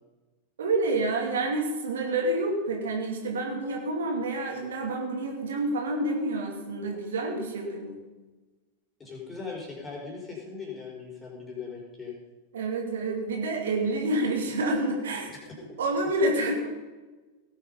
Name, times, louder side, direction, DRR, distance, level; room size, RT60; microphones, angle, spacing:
voice 1, 0.6-8.0 12.5-15.3 15.8-16.7, right 2 dB, 65° right, 0 dB, 2.5 m, -28 dB
voice 2, 9.0-12.1, left 5 dB, 15° left, -2 dB, 4.5 m, -39 dB
18.0 x 7.6 x 5.5 m, 1.2 s
figure-of-eight pair, 90°, 0 cm